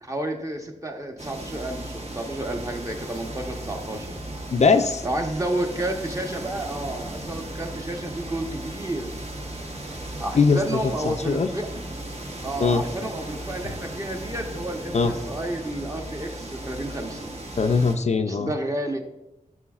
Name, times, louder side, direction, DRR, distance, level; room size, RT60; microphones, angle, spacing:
voice 1, 0.0-4.1 5.0-9.1 10.2-11.7 12.4-17.3 18.3-19.0, right 1 dB, 25° right, 3 dB, 1.0 m, -31 dB
sound 1, 1.2-18.0, right 1 dB, 50° right, 1.3 m, -36 dB
voice 2, 4.5-5.0 10.3-10.6 11.0-11.5 12.6-12.8 14.9-15.1 17.6-18.5, left 4 dB, 55° left, 7 dB, 0.4 m, -20 dB
11.0 x 6.2 x 2.4 m, 0.91 s
wide cardioid pair, 95°, 14 cm